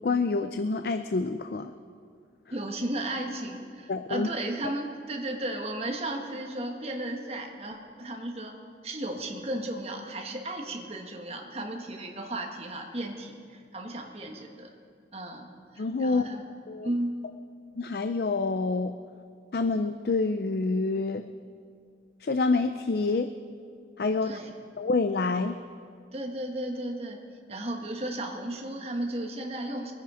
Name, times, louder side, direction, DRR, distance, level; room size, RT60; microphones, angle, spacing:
voice 1, 0.0-1.7 3.9-4.3 15.8-16.3 16.7-16.9 17.7-19.0 19.5-21.3 22.2-23.3 24.0-24.4 24.8-25.6, left 3 dB, 55° left, 9 dB, 0.4 m, -27 dB
voice 2, 2.5-14.7 15.1-15.5 15.7-16.4 16.8-17.2 24.2-24.5 26.1-27.2 27.5-29.9, right 1 dB, 35° right, 2 dB, 1.4 m, -34 dB
23.0 x 9.9 x 5.0 m, 2.2 s
head